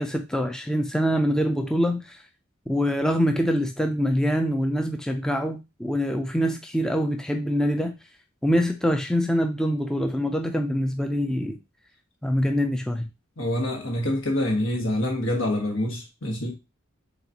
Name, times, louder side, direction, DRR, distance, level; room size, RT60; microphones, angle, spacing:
voice 1, 0.0-2.2 2.7-8.0 8.4-11.6 12.2-13.1, equal, 5° left, 0.3 m, -24 dB
voice 2, 13.4-16.5, left 1 dB, 75° left, 1.4 m, -26 dB
4.1 x 3.8 x 2.8 m
head